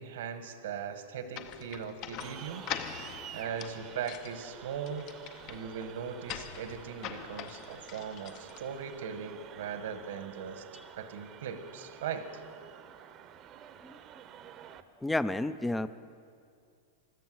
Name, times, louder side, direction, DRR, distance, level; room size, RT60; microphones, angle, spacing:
voice 1, 0.0-2.6 3.3-5.1 5.5-10.7 10.9-12.3, right 7 dB, 75° right, 9 dB, 1.3 m, -39 dB
sound 1, 1.3-9.0, left 10 dB, 45° left, 0.7 m, -44 dB
sound 2, 2.2-14.8, right 10 dB, 35° right, 0.8 m, -50 dB
voice 2, 15.0-16.0, left 2 dB, 5° left, 14 dB, 0.4 m, -31 dB
14.0 x 12.0 x 7.7 m, 2.3 s
hypercardioid pair, 125°, 0 cm